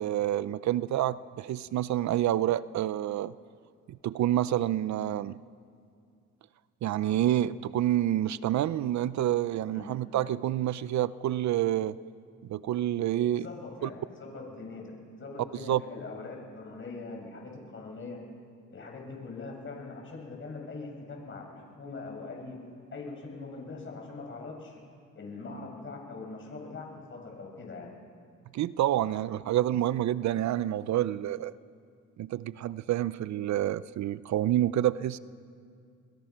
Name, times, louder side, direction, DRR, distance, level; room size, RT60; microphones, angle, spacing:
voice 1, 0.0-3.3 3.9-5.4 6.8-12.0 12.5-13.5 13.8-13.9 15.7-15.8 28.5-31.5 32.2-35.2, right 12 dB, 65° right, 17 dB, 0.6 m, -28 dB
voice 2, 13.3-18.2 18.7-22.6 22.9-24.8 25.1-27.9, left 3 dB, 40° left, 1 dB, 6.8 m, -42 dB
29.0 x 22.5 x 5.9 m, 2.3 s
cardioid pair, 90°, 30 cm